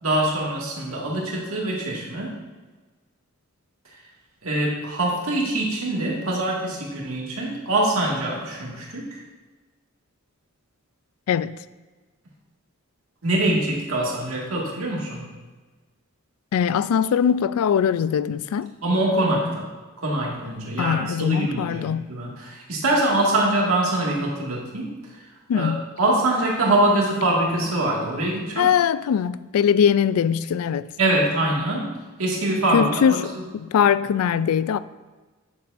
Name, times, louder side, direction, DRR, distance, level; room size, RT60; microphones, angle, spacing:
voice 1, 0.0-2.4 4.4-9.2 13.2-15.3 18.8-19.7 20.0-24.9 25.5-28.7 31.0-33.2, right 1 dB, 75° right, 1.9 m, -24 dB
voice 2, 16.5-18.7 20.8-22.0 25.5-25.9 28.6-30.9 32.7-34.8, left 8 dB, 80° left, 0.3 m, -21 dB
9.6 x 7.0 x 2.6 m
head